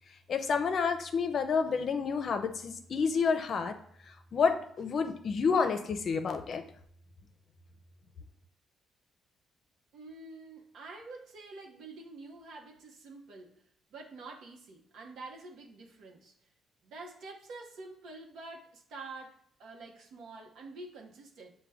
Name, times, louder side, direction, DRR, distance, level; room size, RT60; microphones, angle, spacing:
voice 1, 0.3-3.7 4.3-6.6, left 5 dB, 55° left, 8 dB, 0.5 m, -29 dB
voice 2, 9.9-13.7 13.9-16.3 16.8-21.5, right 3 dB, 80° right, 0 dB, 0.8 m, -47 dB
6.4 x 2.2 x 3.4 m, 0.67 s
cardioid pair, 90°, 0 cm